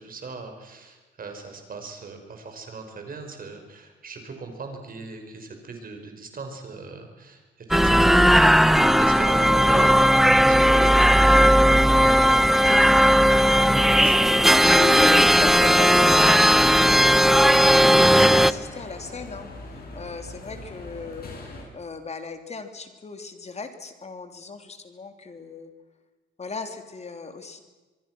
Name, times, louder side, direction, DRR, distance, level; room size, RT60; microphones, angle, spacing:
voice 1, 0.0-7.4 7.7-12.3 12.5-14.2, right 3 dB, 45° right, 5 dB, 5.7 m, -39 dB
sound 1, 7.7-18.5, equal, ahead, 0.8 m, -16 dB
sound 2, 13.8-21.6, left 2 dB, 50° left, 7.6 m, -41 dB
voice 2, 14.6-19.5 19.9-21.3 21.7-25.7 26.4-27.6, left 4 dB, 35° left, 7 dB, 3.2 m, -35 dB
24.5 x 23.5 x 6.3 m, 1.2 s
cardioid pair, 90°, 20 cm